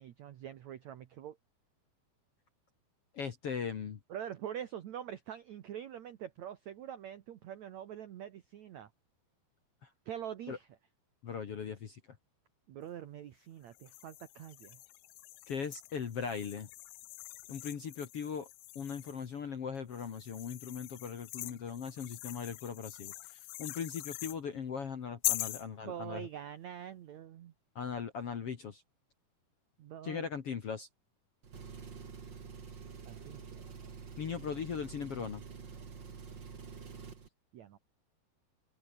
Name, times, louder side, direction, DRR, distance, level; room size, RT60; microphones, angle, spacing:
voice 1, 0.0-1.4 4.1-8.9 10.0-10.7 12.7-14.8 25.8-27.5 29.8-30.3 33.0-33.6 37.5-37.8, right 10 dB, 85° right, 1.5 m, -44 dB
voice 2, 3.1-4.0 9.8-9.9 10.5-10.6 11.2-12.0 15.5-16.7 17.5-18.5 18.8-26.3 27.8-28.8 30.0-30.9 34.2-35.4, left 6 dB, 55° left, 1.7 m, -39 dB
sound 1, 13.7-19.3 19.9-24.4 25.2-25.7, left 21 dB, 85° left, 2.4 m, -42 dB
Engine, 31.4-37.3, right 5 dB, 35° right, 2.2 m, -48 dB
omnidirectional pair, 5.1 m